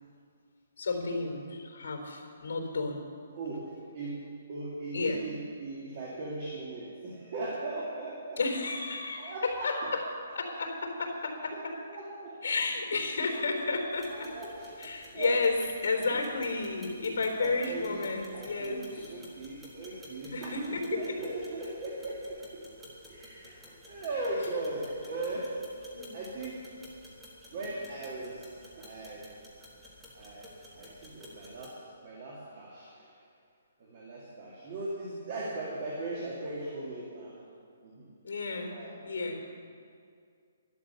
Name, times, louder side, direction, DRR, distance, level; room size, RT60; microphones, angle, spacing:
voice 1, 0.8-3.0 4.9-5.3 8.4-10.0 10.3-11.8 12.4-14.3 14.8-18.9 20.3-21.2 25.9-26.2 27.5-27.8 38.2-39.4, left 3 dB, 65° left, 2 dB, 3.7 m, -32 dB
voice 2, 3.4-4.2 4.5-8.4 9.2-10.1 11.5-11.6 11.9-12.4 13.3-13.4 13.7-13.8 14.1-15.4 16.1-16.3 17.4-22.6 23.1-23.6 23.9-25.6 26.1-26.6 27.5-29.3 30.1-30.5 30.7-33.1 33.8-37.3 37.8-38.1 38.7-38.9, right 2 dB, 30° right, -4 dB, 2.1 m, -38 dB
sound 1, 13.9-31.7, equal, 5° right, 1.6 m, -53 dB
12.0 x 12.0 x 6.8 m, 2.2 s
hypercardioid pair, 175°, 0 cm